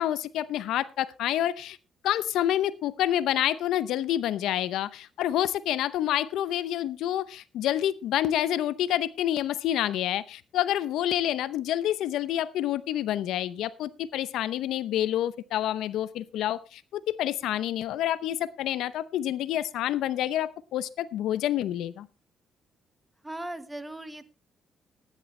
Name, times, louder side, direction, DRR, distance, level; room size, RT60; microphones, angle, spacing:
voice 1, 0.0-1.8 2.0-22.1, left 12 dB, 85° left, 16 dB, 0.7 m, -28 dB
voice 2, 23.2-24.2, right 1 dB, 10° right, 11 dB, 1.3 m, -38 dB
15.0 x 10.5 x 3.3 m, 0.30 s
cardioid pair, 90°, 0 cm